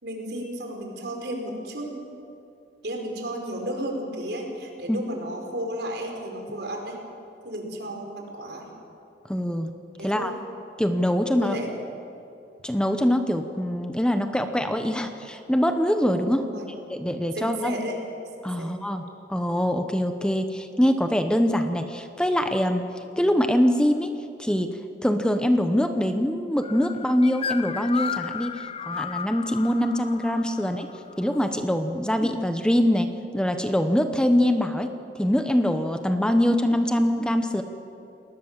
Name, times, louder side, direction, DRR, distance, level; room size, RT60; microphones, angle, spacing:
voice 1, 0.0-2.0 2.8-7.0 7.4-8.7 10.0-10.3 11.3-11.7 16.4-16.7 17.3-18.0 18.6-18.7 30.6-30.7, right 1 dB, 65° right, 2 dB, 4.9 m, -33 dB
voice 2, 9.3-9.7 10.0-10.3 10.8-11.6 12.6-16.4 16.9-17.8 18.4-19.0 19.3-22.8 23.2-24.1 24.4-24.7 25.0-30.9 31.2-33.1 33.3-34.9 35.2-37.6, equal, 5° left, 7 dB, 1.0 m, -23 dB
sound 1, 26.6-31.6, left 7 dB, 35° left, 0.6 m, -34 dB
28.5 x 19.5 x 7.5 m, 2.7 s
head